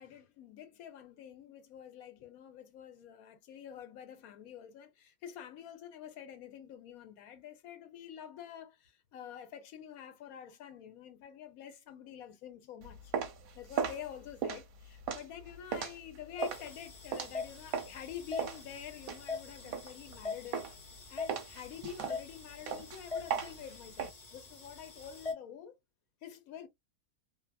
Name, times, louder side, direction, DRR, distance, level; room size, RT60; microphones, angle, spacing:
voice 1, 0.0-13.1 13.5-20.7 21.1-25.8 26.2-26.7, left 9 dB, 70° left, 1.1 m, -48 dB
sound 1, 12.8-18.0 18.4-20.2 20.5-20.9 21.3-24.1, right 7 dB, 70° right, 1.1 m, -37 dB
sound 2, 16.4-25.3, left 4 dB, 35° left, 0.6 m, -43 dB
2.8 x 2.3 x 2.3 m
omnidirectional pair, 1.6 m